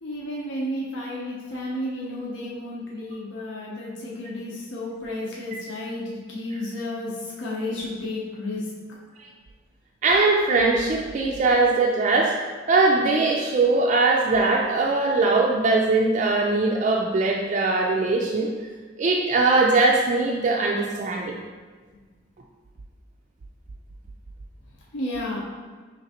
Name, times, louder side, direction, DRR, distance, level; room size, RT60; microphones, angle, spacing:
voice 1, 0.0-7.1 7.4-8.6 24.9-25.4, left 1 dB, 80° left, -4 dB, 0.7 m, -32 dB
voice 2, 10.0-12.3 12.7-18.5 19.0-21.3, right 3 dB, 40° right, -1 dB, 0.3 m, -21 dB
5.0 x 3.2 x 2.8 m, 1.5 s
head